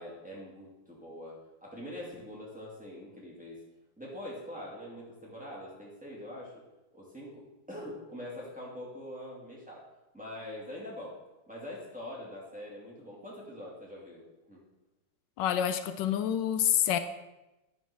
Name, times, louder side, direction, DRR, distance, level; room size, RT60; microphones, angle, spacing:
voice 1, 0.0-3.6 4.0-6.5 6.9-9.9 10.1-11.2 11.5-14.2 14.5-14.6, left 1 dB, 5° right, 2.3 m, -44 dB
voice 2, 15.4-17.0, left 10 dB, 85° left, 1.3 m, -27 dB
10.5 x 4.5 x 5.9 m
omnidirectional pair, 1.9 m